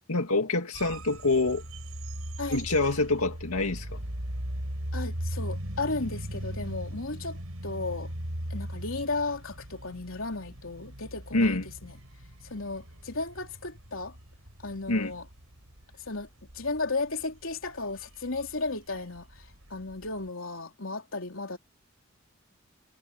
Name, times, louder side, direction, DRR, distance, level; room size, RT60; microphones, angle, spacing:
voice 1, 0.1-1.6 2.5-4.0 11.3-11.7 14.9-15.1, left 2 dB, 90° left, 2.1 m, -26 dB
sound 1, 0.7-20.3, right 1 dB, 80° right, 5.5 m, -39 dB
voice 2, 4.9-8.1 8.5-12.0 12.4-14.2 14.6-15.2 16.0-16.3 16.5-21.6, left 3 dB, 65° left, 3.5 m, -34 dB
head